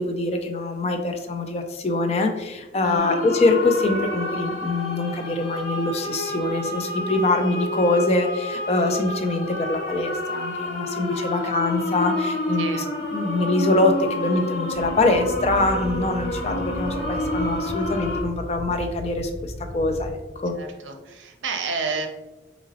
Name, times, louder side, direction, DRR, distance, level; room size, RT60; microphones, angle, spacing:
voice 1, 0.0-12.8 13.1-20.1 20.4-20.5, left 2 dB, 35° left, 5 dB, 0.3 m, -24 dB
voice 2, 2.8-3.3 11.1-11.3 12.6-12.9 20.5-22.1, right 4 dB, 90° right, 5 dB, 0.5 m, -30 dB
sound 1, 3.0-18.2, left 1 dB, 65° left, 1.1 m, -29 dB
sound 2, 14.7-20.1, equal, 15° right, 1.3 m, -36 dB
3.8 x 2.9 x 2.8 m, 1.1 s
head